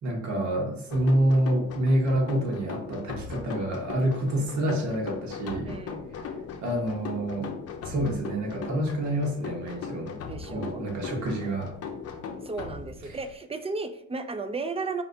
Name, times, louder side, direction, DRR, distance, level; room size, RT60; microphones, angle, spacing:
voice 1, 0.0-5.8 6.1-6.2 6.6-7.5 7.8-10.2 10.5-11.7 13.1-13.2, right 1 dB, 70° right, 0 dB, 1.5 m, -27 dB
sound 1, 0.9-13.4, left 5 dB, 55° left, 0.7 m, -38 dB
voice 2, 5.6-6.1 10.2-10.9 12.4-15.0, right 3 dB, 20° right, 8 dB, 0.5 m, -34 dB
4.9 x 3.4 x 2.7 m, 0.72 s
cardioid pair, 90°, 30 cm